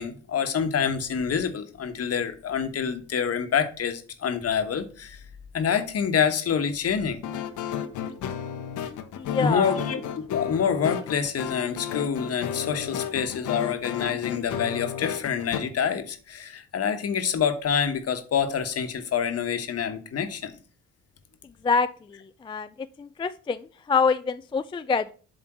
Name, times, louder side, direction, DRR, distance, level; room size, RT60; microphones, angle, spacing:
voice 1, 0.0-5.2 5.5-7.2 9.4-10.0 10.3-20.5, left 7 dB, 55° left, 1.2 m, -27 dB
sound 1, 7.2-15.6, left 8 dB, 80° left, 1.0 m, -33 dB
voice 2, 9.2-9.8 21.6-22.7 23.0-25.1, left 5 dB, 15° left, 0.3 m, -26 dB
7.6 x 3.7 x 6.0 m
cardioid pair, 90°, 30 cm